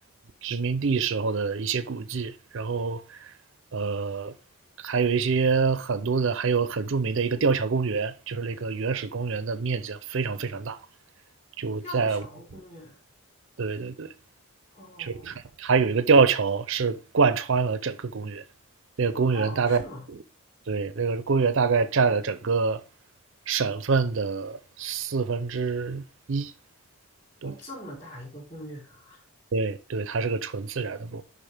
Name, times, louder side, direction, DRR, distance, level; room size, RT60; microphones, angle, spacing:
voice 1, 0.4-3.0 3.7-4.3 4.8-10.8 11.6-12.2 13.6-14.1 15.0-18.4 19.0-19.8 20.7-22.8 23.5-26.0 26.3-26.5 27.4-27.5 29.5-31.2, right 5 dB, 55° right, 0.5 m, -25 dB
voice 2, 11.8-13.0 14.7-15.4 19.3-20.1 27.4-29.3, equal, 35° left, 4.0 m, -42 dB
11.0 x 4.0 x 3.4 m
head